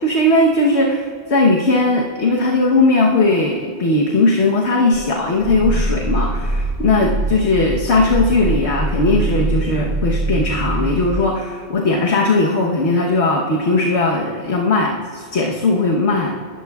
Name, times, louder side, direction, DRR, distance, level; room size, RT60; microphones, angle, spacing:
voice 1, 0.0-16.4, left 2 dB, 70° left, -1 dB, 1.4 m, -18 dB
Growling, 4.9-11.3, right 2 dB, 25° right, 0.3 m, -23 dB
27.5 x 14.0 x 2.4 m, 2.1 s
omnidirectional pair, 1.2 m